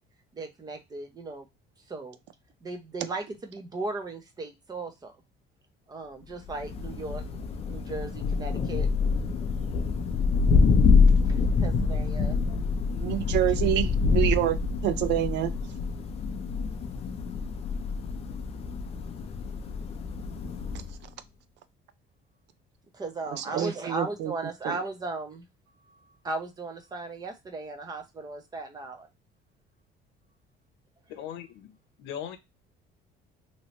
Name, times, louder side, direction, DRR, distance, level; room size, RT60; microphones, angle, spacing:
voice 1, 0.3-1.5 1.9-2.2 2.6-5.1 5.9-7.4 7.7-8.9 10.9-12.4 22.9-25.5 25.9-26.0 26.2-29.1, right 2 dB, 20° right, 0.6 m, -37 dB
Thunder, 6.5-21.0, left 4 dB, 30° left, 0.4 m, -26 dB
voice 2, 13.0-14.6 14.8-15.5 23.5-24.3 24.6-24.7, right 13 dB, 65° right, 0.4 m, -26 dB
voice 3, 31.1-32.4, left 9 dB, 75° left, 0.7 m, -39 dB
3.0 x 2.9 x 2.9 m
cardioid pair, 165°, 20 cm